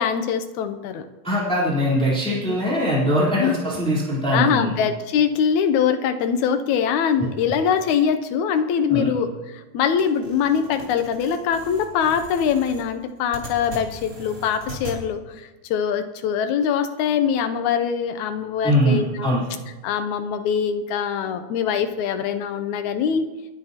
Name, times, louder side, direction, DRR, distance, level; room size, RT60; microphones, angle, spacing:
voice 1, 0.0-1.1 2.3-2.6 3.4-3.5 4.3-19.3 19.8-23.3, left 7 dB, 80° left, 9 dB, 2.2 m, -23 dB
voice 2, 1.2-4.7 8.9-9.1 18.6-19.4, equal, ahead, -7 dB, 3.4 m, -21 dB
sound 1, 10.0-15.0, right 1 dB, 25° right, 3.0 m, -39 dB
29.5 x 10.0 x 2.9 m, 1.2 s
omnidirectional pair, 3.4 m